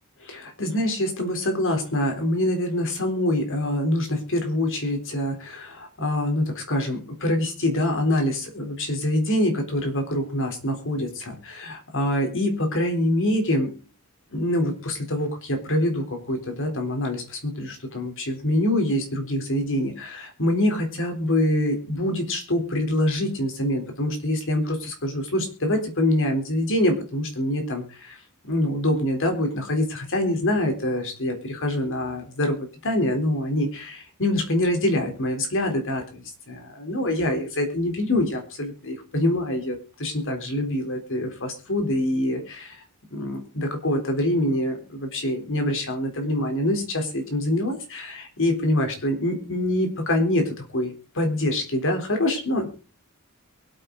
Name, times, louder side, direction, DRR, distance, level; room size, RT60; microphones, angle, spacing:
voice 1, 0.2-13.7 14.3-28.2 28.4-42.8 43.1-52.7, left 1 dB, 60° left, 5 dB, 3.8 m, -25 dB
23.0 x 9.0 x 3.9 m, 0.34 s
head